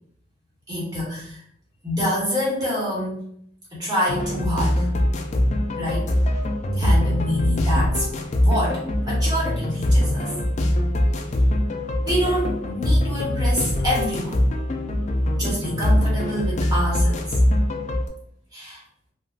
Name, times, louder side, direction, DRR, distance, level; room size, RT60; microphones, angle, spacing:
voice 1, 0.7-1.4 1.8-3.2 3.7-4.9 5.7-6.1 6.7-8.1 8.4-10.3 12.0-14.4 15.3-17.4 18.5-18.8, equal, 20° right, -7 dB, 1.2 m, -26 dB
sound 1, 4.1-18.1, left 1 dB, 40° left, 0.4 m, -22 dB
3.5 x 2.3 x 2.4 m, 0.68 s
head